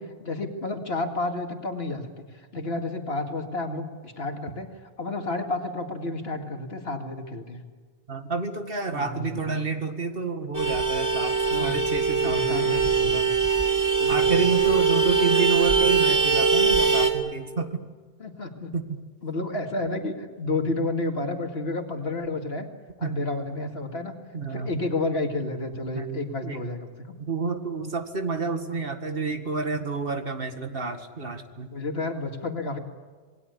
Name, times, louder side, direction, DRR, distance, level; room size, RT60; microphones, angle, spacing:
voice 1, 0.0-2.1 2.5-4.7 5.0-7.6 8.9-9.6 11.5-11.8 12.1-13.4 14.0-14.4 18.2-18.7 19.2-22.7 23.0-24.2 24.5-27.2 31.7-32.8, left 2 dB, 75° left, 4 dB, 2.5 m, -31 dB
voice 2, 8.1-13.3 14.1-17.9 18.7-19.0 23.0-23.3 24.3-24.7 25.9-26.6 27.2-31.7, right 4 dB, 65° right, 7 dB, 2.1 m, -30 dB
Vehicle horn car horn honking, 10.5-17.1, right 5 dB, 15° right, 2.6 m, -22 dB
27.5 x 20.0 x 8.3 m, 1.5 s
omnidirectional pair, 1.1 m